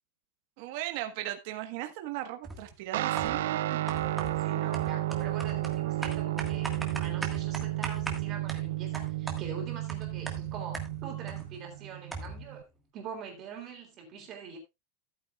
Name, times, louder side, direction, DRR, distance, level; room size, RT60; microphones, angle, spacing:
voice 1, 0.6-3.8, right 14 dB, 45° right, 1.3 m, -37 dB
sound 1, 2.4-2.7 3.2-3.5 3.9-11.5 11.7-11.8 12.1-12.5, right 3 dB, 5° right, 1.6 m, -40 dB
Guitar, 2.9-12.6, right 16 dB, 80° right, 0.5 m, -32 dB
voice 2, 4.0-12.7 12.9-14.6, right 5 dB, 25° right, 3.2 m, -44 dB
14.5 x 9.3 x 2.4 m
supercardioid pair, 180°, 0 cm